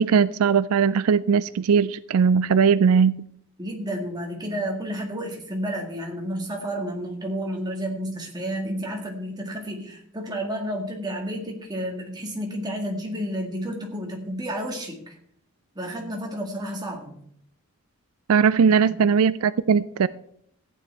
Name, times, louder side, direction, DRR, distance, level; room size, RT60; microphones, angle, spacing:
voice 1, 0.0-3.2 18.3-20.1, right 6 dB, 80° right, 0.4 m, -19 dB
voice 2, 3.6-15.2 15.8-17.2 18.6-19.0, equal, 20° right, 2.0 m, -31 dB
14.0 x 9.2 x 4.5 m
head